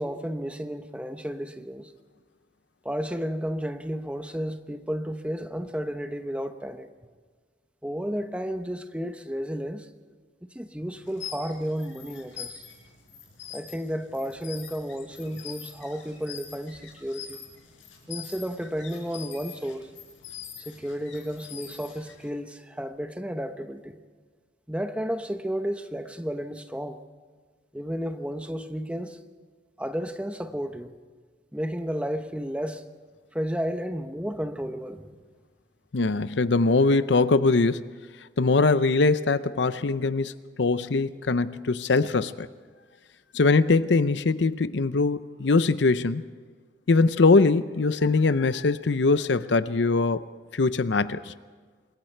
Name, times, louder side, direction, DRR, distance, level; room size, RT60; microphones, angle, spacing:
voice 1, 0.0-1.9 2.8-6.9 7.8-9.9 10.4-12.6 13.5-17.4 18.1-19.9 20.6-24.0 24.7-27.0 27.7-29.2 29.8-30.9 31.5-32.8 33.3-35.2, equal, 5° right, 0.9 m, -32 dB
sound 1, 11.0-22.3, left 8 dB, 85° left, 5.5 m, -44 dB
voice 2, 35.9-37.8 38.4-40.3 40.6-42.5 43.3-46.2 46.9-50.2 50.5-51.3, left 3 dB, 65° left, 0.6 m, -22 dB
27.0 x 21.5 x 4.5 m
head